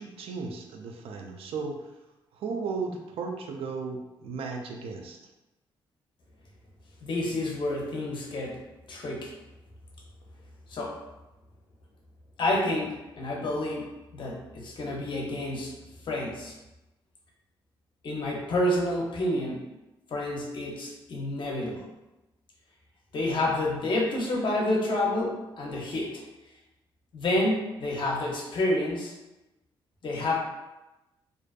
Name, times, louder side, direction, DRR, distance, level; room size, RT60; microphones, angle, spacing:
voice 1, 0.0-1.8 2.3-5.2, right 4 dB, 80° right, 3 dB, 0.4 m, -35 dB
voice 2, 7.0-8.6 8.9-9.3 10.7-11.0 12.4-15.7 16.1-16.5 18.0-19.6 20.1-21.9 23.1-26.2 27.1-29.1 30.0-30.4, left 1 dB, 55° left, -1 dB, 0.7 m, -29 dB
2.5 x 2.2 x 2.4 m, 0.99 s
cardioid pair, 80°, 9 cm